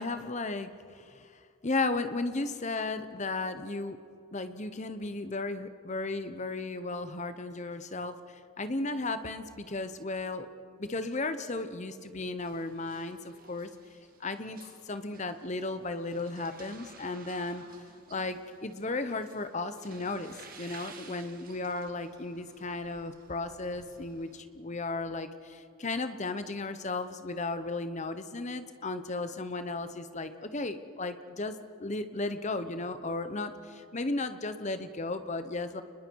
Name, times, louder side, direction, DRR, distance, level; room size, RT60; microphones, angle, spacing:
voice 1, 0.0-1.3 1.6-4.0 4.3-10.5 10.8-13.7 14.2-17.6 18.1-35.8, left 3 dB, 35° left, 10 dB, 0.9 m, -35 dB
sound 1, 12.4-24.4, right 5 dB, 40° right, 1.8 m, -54 dB
29.5 x 21.0 x 4.7 m, 2.4 s
head